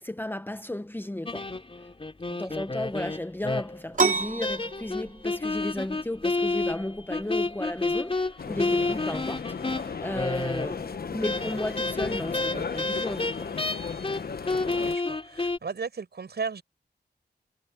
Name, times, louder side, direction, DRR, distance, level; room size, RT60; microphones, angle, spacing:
voice 1, 0.0-1.5 2.4-13.5, left 1 dB, 10° left, 0.8 m, -34 dB
sound 1, 1.3-3.9 4.4-10.9 11.2-14.2 14.5-15.6, left 3 dB, 30° left, 3.6 m, -30 dB
sound 2, 3.9-13.3, right 4 dB, 50° right, 5.1 m, -35 dB
sound 3, 8.4-14.9, left 5 dB, 60° left, 1.1 m, -35 dB
voice 2, 14.6-16.6, right 5 dB, 70° right, 7.6 m, -35 dB
wide cardioid pair, 130°, 17 cm